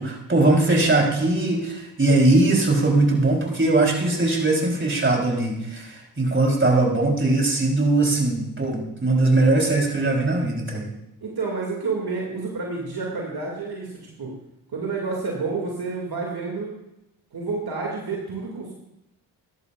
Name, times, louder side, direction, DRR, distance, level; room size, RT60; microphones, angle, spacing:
voice 1, 0.0-10.9, right 2 dB, 25° right, 0 dB, 3.8 m, -20 dB
voice 2, 11.2-14.3 14.7-16.7 17.3-18.7, right 4 dB, 50° right, -2 dB, 2.5 m, -29 dB
14.0 x 11.0 x 2.5 m, 0.85 s
hypercardioid pair, 40°, 49 cm